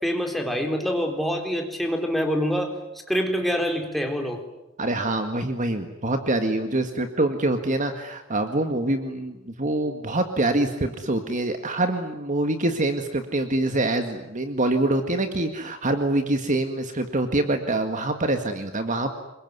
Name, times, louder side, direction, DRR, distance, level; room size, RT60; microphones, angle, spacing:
voice 1, 0.0-2.7 3.1-4.4, equal, ahead, 3 dB, 3.9 m, -25 dB
voice 2, 4.8-19.1, right 2 dB, 40° right, 7 dB, 1.9 m, -25 dB
27.0 x 23.0 x 9.6 m, 0.92 s
head